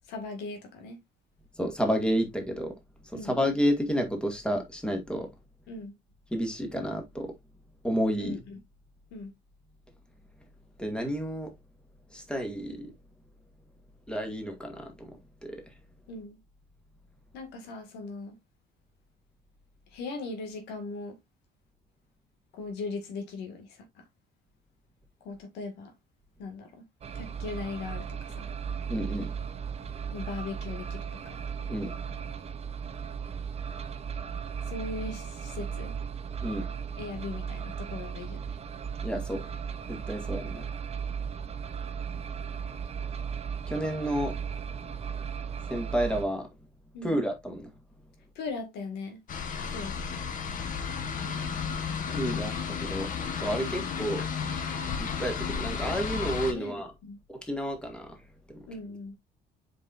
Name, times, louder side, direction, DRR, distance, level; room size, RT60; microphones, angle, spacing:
voice 1, 0.1-1.0 3.1-3.4 5.7-5.9 8.2-8.6 9.1-9.3 16.1-16.4 17.3-18.3 19.9-21.2 22.5-24.0 25.2-25.9 26.4-26.8 27.1-28.5 30.1-31.4 34.7-36.0 37.0-38.6 46.9-47.2 48.4-49.2 49.7-50.0 56.5-57.2 58.7-59.2, left 3 dB, 85° left, 2.0 m, -39 dB
voice 2, 1.6-2.7 3.0-5.3 6.3-7.3 7.8-8.4 10.8-11.5 12.1-12.9 14.1-15.6 28.9-29.3 31.7-31.9 36.4-36.7 39.0-39.4 39.9-40.6 43.7-44.3 45.7-46.5 47.0-47.7 52.2-53.1 53.4-54.3 55.0-56.9 57.4-58.2 58.5-58.6, equal, 5° left, 2.0 m, -30 dB
sound 1, 27.0-46.2, right 7 dB, 40° right, 0.8 m, -36 dB
sound 2, 49.3-56.5, left 6 dB, 50° left, 1.3 m, -33 dB
7.2 x 5.3 x 2.6 m
cardioid pair, 110°, 17 cm